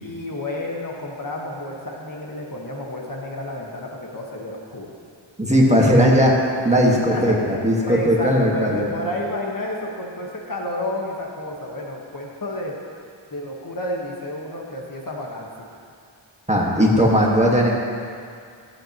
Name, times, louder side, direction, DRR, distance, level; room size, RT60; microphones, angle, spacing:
voice 1, 0.0-4.9 6.4-6.6 6.9-12.8 13.3-15.5, left 1 dB, 45° left, -2 dB, 1.5 m, -31 dB
voice 2, 5.4-6.3 6.6-8.9 16.5-17.7, equal, 15° right, -3 dB, 1.6 m, -17 dB
15.5 x 8.7 x 3.0 m, 2.3 s
wide cardioid pair, 85°, 48 cm